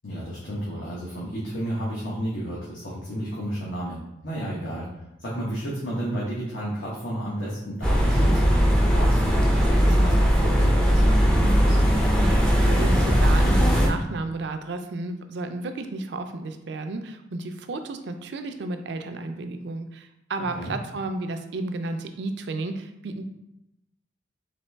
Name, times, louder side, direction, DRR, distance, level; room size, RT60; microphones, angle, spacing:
voice 1, 0.0-4.9 5.2-11.8 20.5-20.7, equal, 80° left, -7 dB, 1.0 m, -32 dB
sound 1, 7.8-13.9, equal, 5° left, 0.4 m, -19 dB
voice 2, 12.2-23.2, right 2 dB, 65° right, 7 dB, 0.4 m, -32 dB
4.1 x 3.0 x 3.3 m, 0.86 s
head